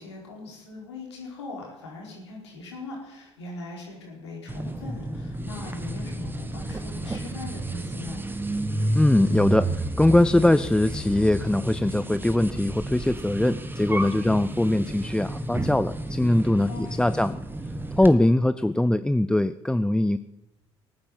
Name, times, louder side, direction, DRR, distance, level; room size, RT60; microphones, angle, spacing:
voice 1, 0.0-8.2 14.1-14.4 16.7-17.1, left 3 dB, 80° left, -1 dB, 4.4 m, -40 dB
sound 1, 4.5-18.1, right 2 dB, 15° right, 1.7 m, -31 dB
voice 2, 8.9-9.7 10.0-17.4 18.0-20.2, left 1 dB, 5° left, 13 dB, 0.5 m, -21 dB
18.5 x 9.5 x 7.5 m, 0.98 s
figure-of-eight pair, 55°, 14 cm